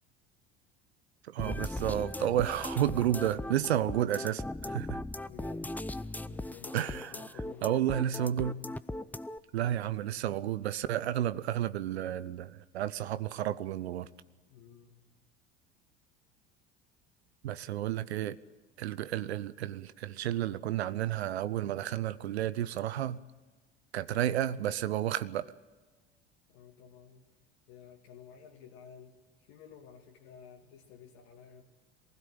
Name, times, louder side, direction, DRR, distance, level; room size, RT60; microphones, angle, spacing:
voice 1, 1.2-5.0 6.7-7.1 7.6-8.6 9.5-14.1 17.4-18.4 18.8-23.2 23.9-25.5, right 12 dB, 75° right, 15 dB, 0.7 m, -31 dB
sound 1, 1.4-9.4, left 2 dB, 5° left, 0.6 m, -38 dB
voice 2, 2.7-3.4 5.2-5.8 6.2-7.8 14.5-15.0 17.7-17.8 20.1-20.2 26.5-27.4 27.7-31.6, left 7 dB, 65° left, -2 dB, 2.5 m, -53 dB
23.0 x 16.5 x 8.9 m, 1.3 s
figure-of-eight pair, 70°, 33 cm